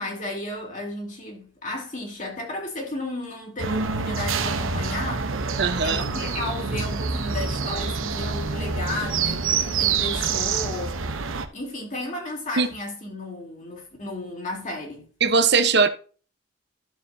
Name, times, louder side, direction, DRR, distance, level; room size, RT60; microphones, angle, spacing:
voice 1, 0.0-5.5 5.8-11.0 11.5-15.1, left 2 dB, 40° left, 3.0 m, -33 dB
sound 1, 3.6-11.5, right 5 dB, 80° right, 1.1 m, -26 dB
voice 2, 5.6-6.0 12.6-12.7 15.2-15.9, right 4 dB, 55° right, 1.0 m, -19 dB
12.0 x 7.1 x 2.8 m
head